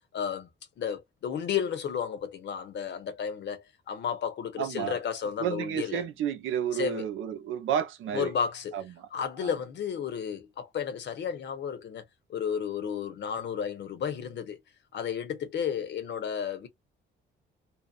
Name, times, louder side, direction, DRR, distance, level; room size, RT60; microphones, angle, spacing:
voice 1, 0.1-0.5 0.8-6.0 6.7-7.1 8.1-8.8 9.1-12.0 12.3-14.6 14.9-16.7, left 7 dB, 60° left, 0.8 m, -32 dB
voice 2, 4.6-5.0 5.4-8.3 8.7-9.1 9.4-9.5, right 9 dB, 80° right, 0.7 m, -31 dB
2.7 x 2.0 x 2.4 m
cardioid pair, 90°, 20 cm